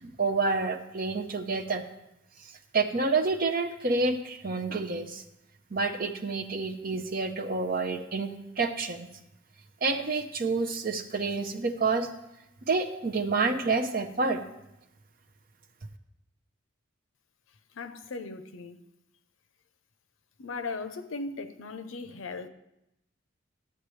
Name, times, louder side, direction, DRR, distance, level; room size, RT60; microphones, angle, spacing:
voice 1, 0.0-1.8 2.7-5.2 5.7-9.1 9.8-12.1 12.6-14.4, right 3 dB, 45° right, 0.7 m, -28 dB
voice 2, 17.7-18.8 20.4-22.5, left 3 dB, 80° left, 0.6 m, -38 dB
11.5 x 8.1 x 3.2 m
head